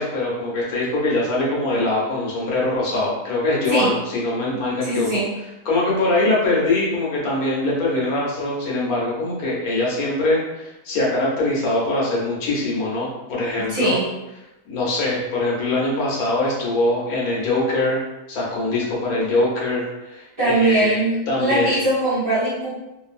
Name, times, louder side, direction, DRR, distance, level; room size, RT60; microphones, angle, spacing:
voice 1, 0.0-5.1 5.7-13.9 14.7-18.0 18.3-21.0 21.3-21.7, left 2 dB, 70° left, -5 dB, 1.2 m, -22 dB
voice 2, 4.8-5.3 13.6-14.1 20.4-22.8, right 2 dB, 40° right, -9 dB, 1.0 m, -21 dB
2.7 x 2.5 x 2.4 m, 0.97 s
omnidirectional pair, 1.6 m